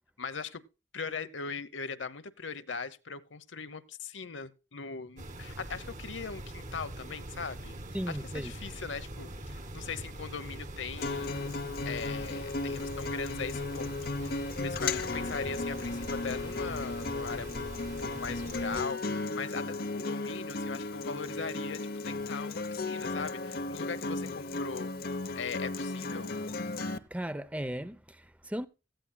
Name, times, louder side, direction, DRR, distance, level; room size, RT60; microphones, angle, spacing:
voice 1, 0.2-0.6 0.9-7.8 8.1-11.5 11.8-17.5 18.0-24.9 25.3-26.3, left 5 dB, 85° left, 0.9 m, -40 dB
sound 1, 5.2-18.9, right 1 dB, 40° right, 1.6 m, -43 dB
voice 2, 7.9-8.5 27.1-28.7, equal, 5° right, 0.6 m, -36 dB
Acoustic guitar, 11.0-27.0, left 3 dB, 50° left, 0.8 m, -35 dB
17.0 x 14.5 x 2.3 m
head